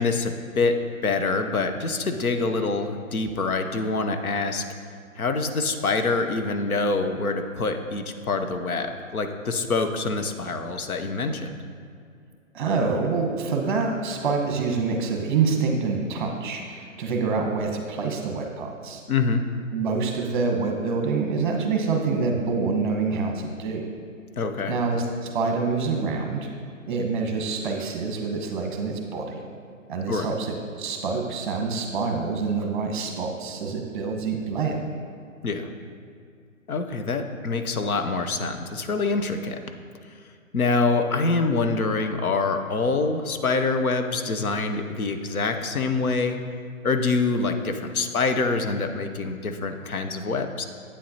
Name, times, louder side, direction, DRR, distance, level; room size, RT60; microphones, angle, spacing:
voice 1, 0.0-4.7 5.2-11.6 19.1-19.4 24.4-24.7 30.1-30.3 35.4-35.7 36.7-39.6 40.5-46.4 46.8-50.6, left 3 dB, 85° left, 6 dB, 0.9 m, -25 dB
voice 2, 12.5-19.0 19.7-23.8 24.7-26.5 26.8-29.4 29.9-34.8, right 4 dB, 35° right, 3 dB, 1.0 m, -26 dB
8.6 x 7.5 x 2.8 m, 2.3 s
hypercardioid pair, 140°, 42 cm